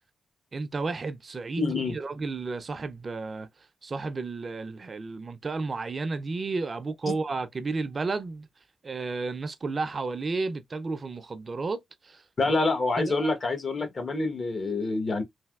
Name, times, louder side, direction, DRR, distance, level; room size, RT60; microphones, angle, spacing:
voice 1, 0.5-3.5 3.8-8.5 8.8-12.6 13.0-13.3, right 3 dB, 45° right, 0.5 m, -32 dB
voice 2, 1.6-2.0 12.4-15.2, left 3 dB, 50° left, 1.0 m, -27 dB
3.3 x 2.7 x 2.3 m
supercardioid pair, 55°, 0 cm